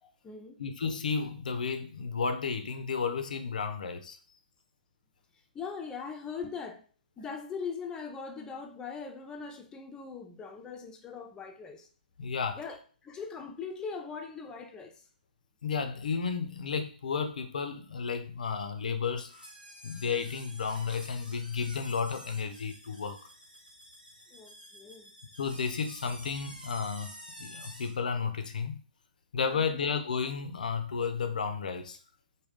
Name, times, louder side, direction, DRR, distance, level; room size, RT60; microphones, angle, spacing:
voice 1, 0.0-0.6 5.5-6.8 7.2-11.9 12.5-15.0 24.3-25.1 29.5-29.9, left 5 dB, 15° left, 0.5 m, -41 dB
voice 2, 0.6-4.2 12.2-12.6 15.6-19.3 19.8-23.2 25.4-28.8 29.3-32.0, left 5 dB, 65° left, 0.5 m, -32 dB
sound 1, 19.2-28.0, equal, 90° right, 0.9 m, -50 dB
3.5 x 2.2 x 3.6 m
figure-of-eight pair, 115°, 5 cm